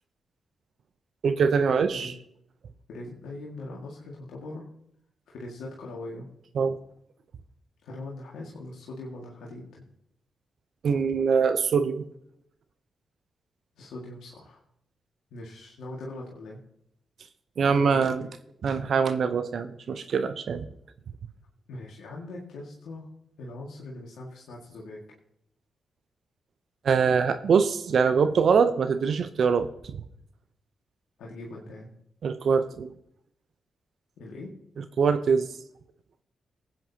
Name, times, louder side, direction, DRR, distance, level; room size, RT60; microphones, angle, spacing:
voice 1, 1.2-2.1 6.6-6.8 10.8-12.1 17.6-18.3 18.6-20.7 26.8-30.0 32.2-32.9 34.8-35.5, right 6 dB, 65° right, 11 dB, 0.7 m, -23 dB
voice 2, 2.9-4.7 5.3-6.3 7.8-9.8 13.8-14.6 15.3-16.6 17.6-18.1 21.7-23.1 23.4-25.0 31.2-31.9 34.2-34.5, left 2 dB, 80° left, -3 dB, 1.9 m, -41 dB
19.5 x 9.0 x 2.8 m, 0.74 s
hypercardioid pair, 40°, 0 cm